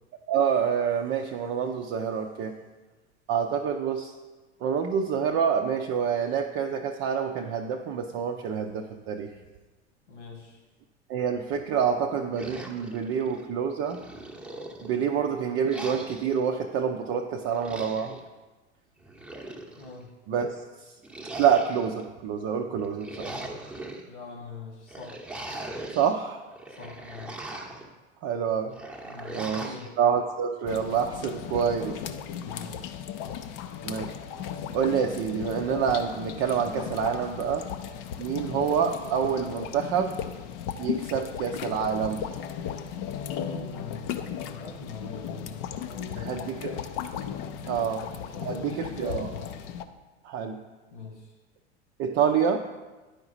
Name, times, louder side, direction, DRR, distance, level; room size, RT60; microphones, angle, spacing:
voice 1, 0.3-2.6 3.3-4.1 4.6-9.3 11.1-14.0 14.8-18.2 20.3-20.6 21.4-23.4 26.0-26.5 28.2-28.8 29.3-32.0 33.8-34.1 34.7-37.7 38.2-40.2 40.8-42.2 46.2-46.7 47.7-48.1 48.4-49.3 50.2-50.6 52.0-52.6, right 7 dB, 35° right, 3 dB, 0.5 m, -27 dB
voice 2, 10.1-10.6 19.8-20.1 24.1-25.2 26.8-27.3 29.0-29.9 32.3-33.1 43.4-46.8 47.7-47.8 48.2-49.5 50.9-51.3, left 3 dB, 80° left, 0 dB, 1.7 m, -42 dB
sound 1, 12.3-13.5 13.9-15.1 15.7-16.4 17.4-18.2 19.0-20.0 21.0-22.0 22.8-24.0 24.9-26.1 26.5-27.9 28.7-29.9, right 2 dB, 5° right, 0.9 m, -40 dB
sound 2, 30.7-49.9, left 9 dB, 45° left, 0.6 m, -36 dB
10.5 x 4.8 x 4.1 m, 1.2 s
figure-of-eight pair, 85°, 34 cm